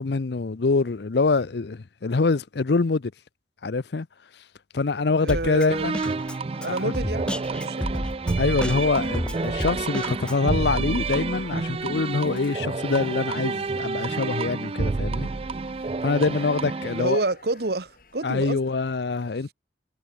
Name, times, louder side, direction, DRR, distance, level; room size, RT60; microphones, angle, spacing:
voice 1, 0.0-3.1 3.6-4.1 4.7-6.0 6.7-6.9 8.4-15.3 16.0-17.2 18.2-19.5, left 4 dB, 65° left, 0.6 m, -25 dB
voice 2, 5.2-5.9 6.6-8.0 16.9-18.6, right 2 dB, 60° right, 1.2 m, -29 dB
Drum kit, 5.3-10.6, equal, 5° left, 1.0 m, -32 dB
sound 1, 5.7-17.2, right 3 dB, 30° right, 0.4 m, -29 dB
sound 2, 10.9-19.0, left 3 dB, 50° left, 6.9 m, -52 dB
head